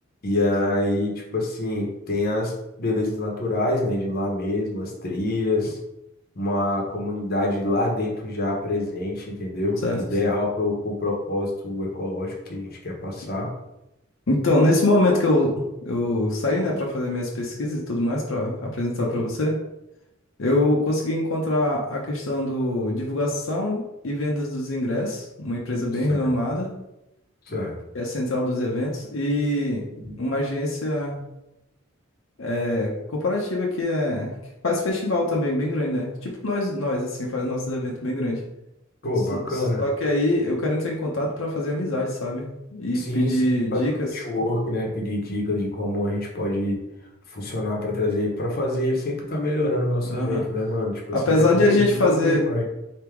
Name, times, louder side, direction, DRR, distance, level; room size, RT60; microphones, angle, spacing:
voice 1, 0.2-2.5 2.8-5.8 6.3-13.5 19.0-19.2 26.1-26.3 27.5-27.7 30.0-30.2 39.0-39.8 42.9-46.8 47.3-51.2 51.7-52.6, left 1 dB, 45° left, -1 dB, 1.0 m, -26 dB
voice 2, 14.3-19.6 20.4-26.7 27.9-29.9 30.2-31.2 32.4-34.3 34.6-38.4 39.3-44.1 44.4-44.5 50.1-50.4 51.1-52.4, left 1 dB, 70° left, -2 dB, 0.8 m, -24 dB
3.5 x 2.9 x 4.5 m, 0.88 s
head